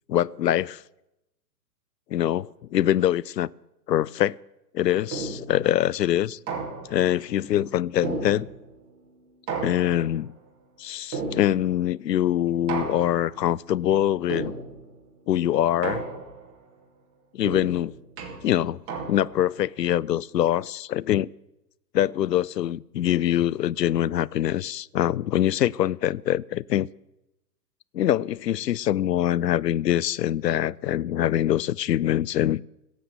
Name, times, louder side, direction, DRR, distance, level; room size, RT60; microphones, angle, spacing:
voice 1, 0.1-0.8 2.1-3.5 3.9-4.4 4.7-6.4 6.9-8.5 9.6-10.3 10.8-14.5 15.3-16.0 17.3-17.9 18.4-18.8 19.1-21.3 21.9-26.9 27.9-32.6, left 11 dB, 75° left, 0.6 m, -24 dB
sound 1, 5.1-5.6 6.5-7.1 8.0-8.8 9.5-10.3 11.1-11.8 12.7-13.4 14.3-14.9 15.8-16.5 17.4-19.5, right 4 dB, 25° right, 2.5 m, -34 dB
16.5 x 7.6 x 7.9 m
figure-of-eight pair, 120°, 50 cm